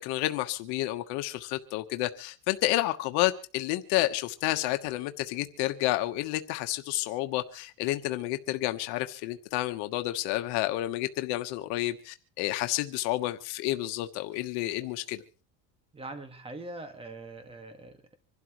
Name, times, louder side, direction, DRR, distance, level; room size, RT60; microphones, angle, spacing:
voice 1, 0.0-15.2, left 16 dB, 80° left, 1.3 m, -30 dB
voice 2, 15.9-18.2, right 2 dB, 15° right, 1.8 m, -42 dB
26.0 x 12.0 x 3.1 m
cardioid pair, 145°, 39 cm